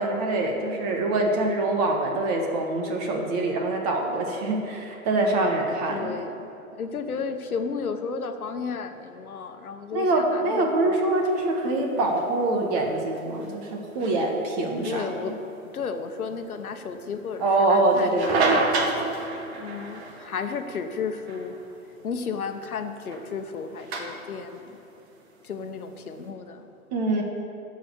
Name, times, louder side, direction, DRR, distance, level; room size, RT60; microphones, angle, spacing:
voice 1, 0.0-6.1 9.9-15.3 17.4-18.6 26.9-27.2, right 2 dB, 30° right, 1 dB, 1.5 m, -24 dB
voice 2, 5.9-11.0 14.8-15.3 15.7-17.4 17.7-18.5 19.5-21.6 22.0-24.7 25.4-26.6, left 5 dB, 85° left, 7 dB, 1.3 m, -33 dB
sound 1, 11.1-26.2, right 3 dB, 45° right, 1.9 m, -33 dB
14.5 x 5.5 x 8.1 m, 2.9 s
hypercardioid pair, 150°, 42 cm